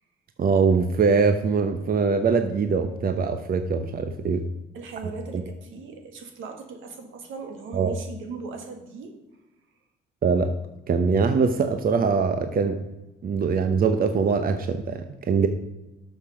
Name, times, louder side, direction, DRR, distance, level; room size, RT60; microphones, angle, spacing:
voice 1, 0.4-4.4 5.3-5.4 7.7-7.9 10.2-10.5 10.9-12.8 13.2-15.5, right 5 dB, 45° right, 8 dB, 0.9 m, -22 dB
voice 2, 4.7-9.1, right 4 dB, 80° right, 5 dB, 2.0 m, -38 dB
12.0 x 6.8 x 5.0 m, 1.0 s
cardioid pair, 90°, 20 cm